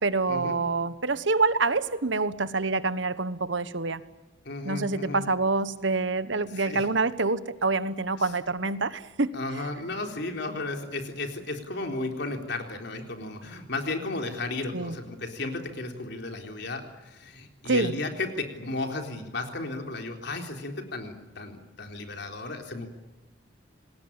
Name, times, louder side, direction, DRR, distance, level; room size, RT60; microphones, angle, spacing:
voice 1, 0.0-4.0 4.6-9.3 14.7-15.0 17.6-17.9, right 3 dB, 65° right, 14 dB, 1.3 m, -26 dB
voice 2, 4.4-5.2 6.5-6.8 8.2-8.3 9.3-22.9, left 2 dB, 60° left, 4 dB, 3.9 m, -34 dB
27.5 x 20.0 x 8.9 m, 1.1 s
head